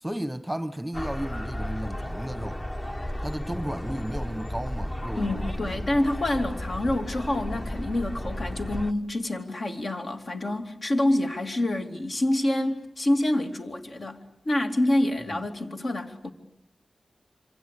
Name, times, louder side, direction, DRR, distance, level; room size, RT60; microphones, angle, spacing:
voice 1, 0.0-2.6 3.2-5.8 15.3-15.4, right 1 dB, 5° right, 1.2 m, -34 dB
sound 1, 0.9-8.9, left 1 dB, 25° left, 1.2 m, -34 dB
voice 2, 5.2-16.3, left 1 dB, 55° left, 2.8 m, -27 dB
27.0 x 26.0 x 8.4 m
wide cardioid pair, 110°, 0 cm